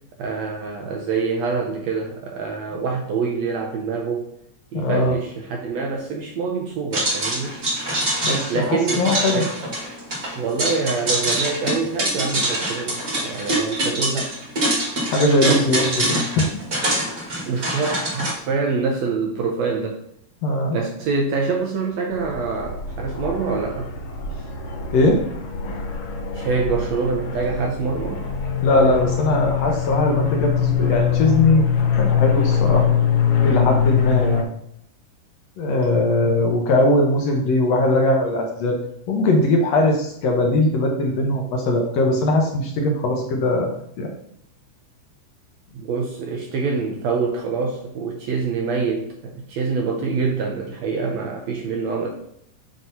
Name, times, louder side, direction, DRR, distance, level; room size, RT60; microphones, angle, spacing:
voice 1, 0.2-4.3 4.7-7.6 8.5-9.5 10.4-14.3 15.5-15.7 16.2-16.3 17.5-20.0 20.7-23.9 26.3-28.3 35.9-36.4 44.1-44.2 45.7-52.1, right 4 dB, 70° right, 1 dB, 1.7 m, -25 dB
voice 2, 4.7-5.2 8.2-9.4 15.1-16.5 16.8-17.0 20.4-20.8 24.9-25.2 25.6-25.9 28.6-31.7 31.9-33.0 33.4-34.5 35.6-38.8 39.1-43.7 44.0-44.1, left 2 dB, 65° left, 0 dB, 1.9 m, -20 dB
sound 1, 6.9-18.3, right 1 dB, 30° right, 1.9 m, -24 dB
sound 2, 22.1-34.4, left 7 dB, 90° left, 2.9 m, -23 dB
7.6 x 3.1 x 5.5 m, 0.71 s
omnidirectional pair, 3.7 m